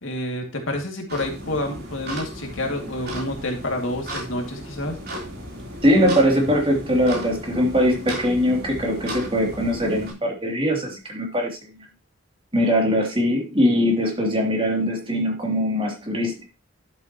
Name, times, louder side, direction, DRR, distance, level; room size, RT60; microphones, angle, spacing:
voice 1, 0.0-5.0, left 1 dB, 75° left, 2 dB, 2.4 m, -28 dB
Ticking of the clock, 1.1-10.1, equal, 55° right, 3.7 m, -35 dB
voice 2, 5.8-11.6 12.5-16.5, equal, 30° right, 0 dB, 3.0 m, -21 dB
11.5 x 7.7 x 3.0 m, 0.28 s
head